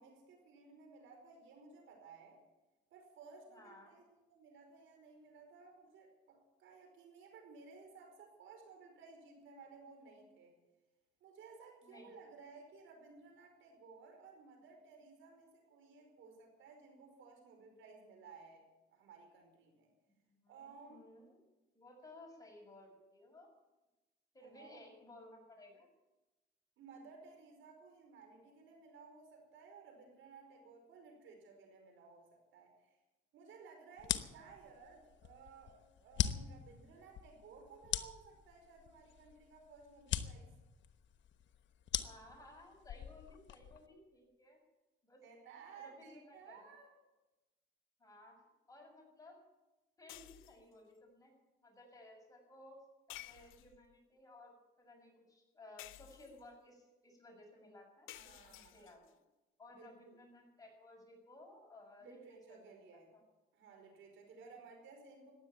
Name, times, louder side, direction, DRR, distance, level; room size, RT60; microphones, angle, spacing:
voice 1, 0.0-2.4 2.9-10.6 11.2-18.6 18.9-19.9 20.5-21.0 24.4-24.8 26.8-33.0 33.3-40.5 45.2-46.9 58.1-58.9 59.7-60.2 62.0-63.1 63.5-65.3, right 4 dB, 80° right, 3 dB, 5.0 m, -57 dB
voice 2, 3.5-4.0 11.8-12.1 20.3-21.4 21.7-23.5 24.3-25.9 42.0-44.6 45.0-45.2 45.7-46.7 48.0-48.4 48.7-49.4 50.0-51.3 51.6-52.8 53.1-54.5 54.8-59.0 59.6-63.0, left 2 dB, 15° left, 1 dB, 6.8 m, -58 dB
sound 1, 34.0-43.9, left 10 dB, 70° left, 1.1 m, -41 dB
sound 2, 50.1-50.7 53.1-53.9 55.8-56.6 58.1-59.1, left 16 dB, 85° left, 0.6 m, -53 dB
15.5 x 10.5 x 8.8 m, 1.1 s
cardioid pair, 90°, 20 cm